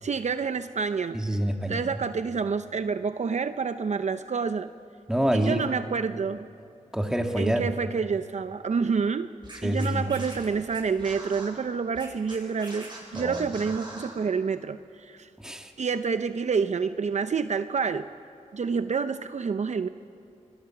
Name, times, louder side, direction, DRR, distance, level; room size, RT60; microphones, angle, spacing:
voice 1, 0.0-1.2 1.7-4.7 5.3-6.5 7.4-9.3 9.6-15.3 15.8-18.0 18.5-19.9, right 5 dB, 60° right, 10 dB, 0.7 m, -28 dB
voice 2, 1.1-1.8 5.1-5.7 6.9-7.7 9.6-10.0 13.1-13.4 15.4-15.7, equal, 5° right, 3 dB, 2.2 m, -26 dB
Scratching (performance technique), 9.4-11.5 11.9-14.1, right 2 dB, 35° right, 7.7 m, -42 dB
25.5 x 20.5 x 6.0 m, 2.6 s
cardioid pair, 70°, 14 cm